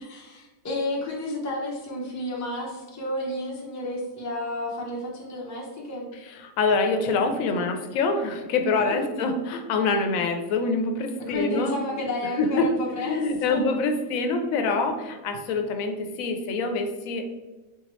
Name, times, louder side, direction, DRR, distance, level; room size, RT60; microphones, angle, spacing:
voice 1, 0.0-6.1 8.8-9.3 11.2-13.6, left 1 dB, 20° left, -2 dB, 0.4 m, -31 dB
voice 2, 6.1-11.7 12.4-12.7 13.0-17.2, left 3 dB, 75° left, 6 dB, 0.9 m, -25 dB
3.9 x 2.8 x 3.0 m, 1.2 s
omnidirectional pair, 1.5 m